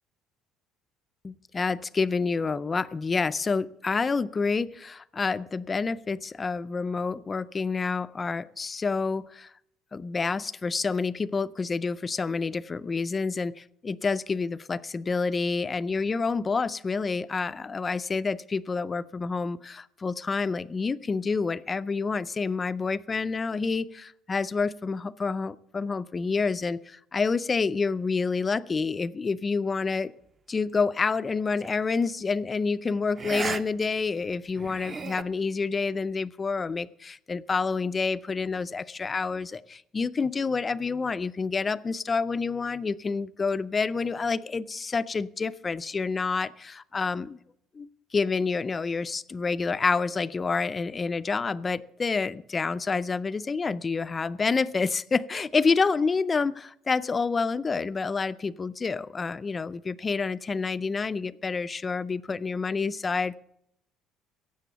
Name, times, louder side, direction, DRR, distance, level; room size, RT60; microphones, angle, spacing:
voice 1, 1.2-9.5 9.9-30.1 30.5-47.4 47.7-63.4, left 4 dB, 20° left, 15 dB, 0.4 m, -28 dB
sound 1, 31.6-31.8 33.2-33.6 34.0-34.1 34.6-35.2, right 5 dB, 25° right, 0.6 m, -34 dB
16.5 x 7.6 x 6.8 m, 0.77 s
cardioid pair, 155°, 0 cm